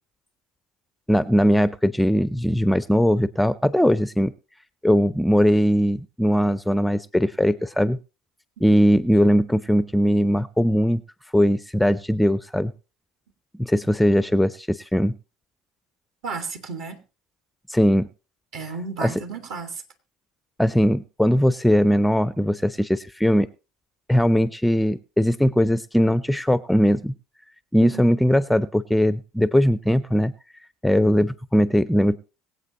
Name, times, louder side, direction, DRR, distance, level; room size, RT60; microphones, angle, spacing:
voice 1, 1.1-4.3 4.8-8.0 8.6-11.0 11.3-12.7 13.6-15.1 17.7-18.1 19.0-19.1 20.6-23.5 24.1-27.1 27.7-30.3 30.8-32.2, equal, 5° left, 16 dB, 0.5 m, -20 dB
voice 2, 16.2-17.0 18.5-19.8 27.8-28.0, right 5 dB, 55° right, 7 dB, 2.0 m, -33 dB
22.5 x 8.0 x 3.0 m, 0.33 s
hypercardioid pair, 70°, 0 cm